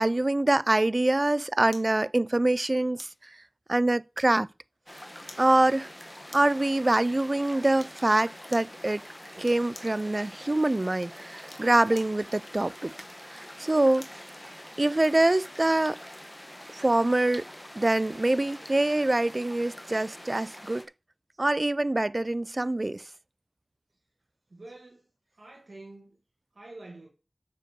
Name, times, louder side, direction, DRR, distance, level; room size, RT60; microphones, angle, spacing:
voice 1, 0.0-3.1 3.7-4.5 5.4-5.9 6.3-9.0 9.4-12.9 13.3-14.1 14.8-16.0 16.7-17.4 17.8-20.8 21.4-23.0, right 2 dB, 45° right, 0.4 m, -25 dB
sound 1, 1.7-2.0 3.0-3.2 4.2-4.6 5.3-5.5 6.3-6.6 7.8-8.0 8.5-8.8 9.4-10.0 11.3-12.2 12.9-14.2 14.7-14.8, left 2 dB, 60° left, 1.6 m, -49 dB
sound 2, 4.9-20.8, left 1 dB, 20° left, 1.3 m, -45 dB
voice 2, 24.5-25.1 25.4-26.2 26.5-27.1, right 2 dB, 85° right, 1.6 m, -47 dB
6.6 x 5.3 x 6.1 m
wide cardioid pair, 40°, 0 cm